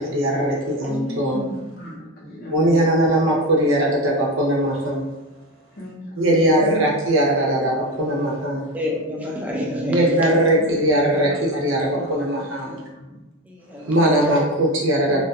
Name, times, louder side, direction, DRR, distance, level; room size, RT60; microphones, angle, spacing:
voice 1, 0.0-1.4 2.5-5.0 6.2-8.7 9.9-12.8 13.9-15.2, right 1 dB, 75° right, -2 dB, 0.7 m, -20 dB
voice 2, 0.9-2.9 5.8-6.9 7.5-7.8 8.5-8.6 10.2-10.4 11.1-11.3 11.6-11.7 11.9-12.1 12.7-13.2 13.8-13.9 15.1-15.2, right 1 dB, 50° left, -3 dB, 0.7 m, -36 dB
voice 3, 8.7-10.2 13.5-14.4, left 1 dB, 10° right, -2 dB, 0.4 m, -27 dB
2.4 x 2.3 x 2.6 m, 1.0 s
head